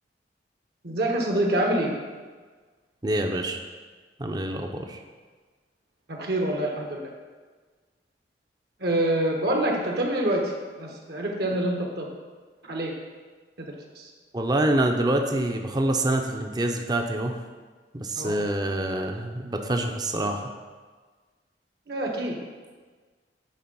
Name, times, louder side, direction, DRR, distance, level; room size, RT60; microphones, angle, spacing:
voice 1, 0.8-1.9 6.1-7.0 8.8-10.5 10.8-12.1 12.7-12.9 13.6-14.1 18.1-18.3 21.9-22.4, right 1 dB, 65° right, 0 dB, 1.3 m, -26 dB
voice 2, 3.0-3.6 4.2-5.0 14.3-17.4 17.9-20.5, right 1 dB, 25° right, 4 dB, 0.6 m, -26 dB
10.0 x 3.4 x 5.5 m, 1.4 s
head